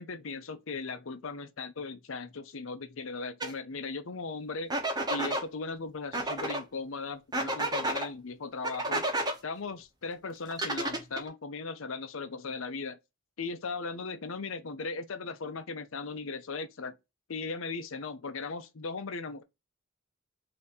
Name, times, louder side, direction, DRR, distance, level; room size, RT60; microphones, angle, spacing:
voice 1, 0.0-4.7 5.1-9.1 9.4-13.0 13.4-17.0 17.3-19.4, left 4 dB, 75° left, 0.7 m, -38 dB
sound 1, 3.4-3.5 4.7-5.4 6.1-6.6 7.3-8.1 8.6-9.3 10.5-11.3, right 1 dB, 20° right, 0.8 m, -31 dB
3.6 x 2.9 x 4.1 m
head